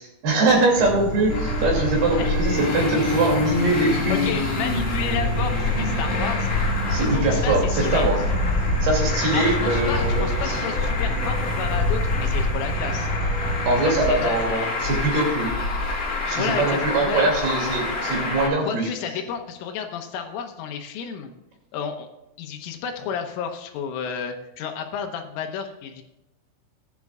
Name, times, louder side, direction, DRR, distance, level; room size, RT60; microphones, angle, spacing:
voice 1, 0.2-4.2 6.9-8.2 8.6-10.6 13.7-15.5 16.3-18.9, right 2 dB, 55° right, -1 dB, 4.3 m, -22 dB
Insect / Frog, 0.7-13.9, right 1 dB, 80° right, 1.6 m, -30 dB
Applause, 0.8-13.2, right 1 dB, 20° right, 4.5 m, -43 dB
Traffic noise roadway noise, 1.3-18.5, left 3 dB, 35° left, 4.0 m, -26 dB
voice 2, 4.1-6.5 7.0-8.1 9.3-13.1 13.8-14.8 16.4-17.3 18.7-21.3 21.7-22.1 22.4-26.0, left 7 dB, 80° left, 5 dB, 3.4 m, -31 dB
19.0 x 11.0 x 2.4 m, 0.93 s
omnidirectional pair, 6.0 m